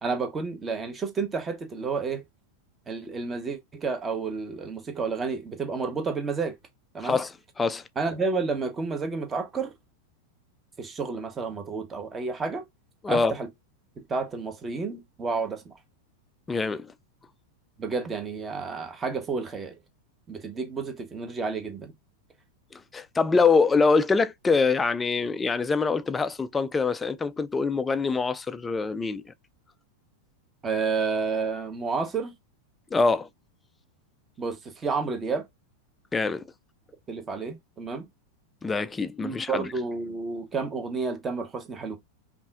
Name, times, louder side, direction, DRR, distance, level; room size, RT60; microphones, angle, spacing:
voice 1, 0.0-2.2 2.9-6.6 6.9-7.2 8.0-9.7 10.8-12.6 13.1-13.5 14.1-15.6 17.8-19.8 20.3-21.9 30.6-32.3 34.4-35.5 37.1-38.1 39.2-42.0, right 4 dB, 20° right, 0.9 m, -30 dB
voice 2, 7.0-7.8 13.0-13.3 16.5-16.9 22.7-29.2 32.9-33.3 36.1-36.4 38.6-39.7, left 4 dB, 15° left, 0.3 m, -24 dB
5.3 x 2.5 x 2.4 m
figure-of-eight pair, 90°, 0 cm